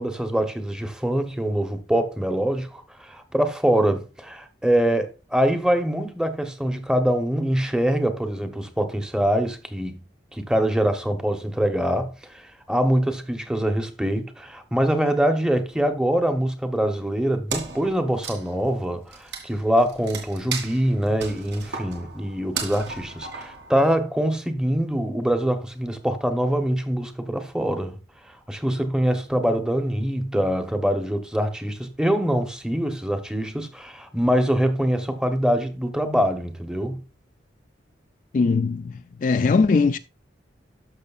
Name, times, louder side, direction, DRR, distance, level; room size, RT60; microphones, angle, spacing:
voice 1, 0.0-10.0 10.3-28.0 28.3-37.0, equal, 5° right, 0.9 m, -24 dB
Wood, 17.5-24.2, right 5 dB, 70° right, 2.3 m, -36 dB
voice 2, 38.3-38.9 39.2-40.0, left 4 dB, 45° left, 0.3 m, -20 dB
12.5 x 6.4 x 2.4 m
head